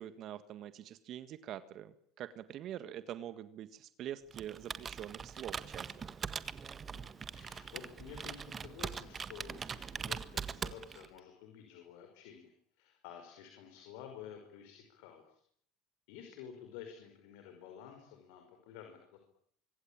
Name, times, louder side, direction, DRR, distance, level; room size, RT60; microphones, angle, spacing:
voice 1, 0.0-5.9, right 11 dB, 55° right, 13 dB, 1.7 m, -45 dB
Computer keyboard, 4.3-11.2, right 6 dB, 30° right, 1.7 m, -42 dB
voice 2, 6.9-15.4 16.1-19.2, left 8 dB, 75° left, 5 dB, 5.4 m, -51 dB
25.0 x 24.5 x 8.9 m, 0.64 s
supercardioid pair, 90°, 0 cm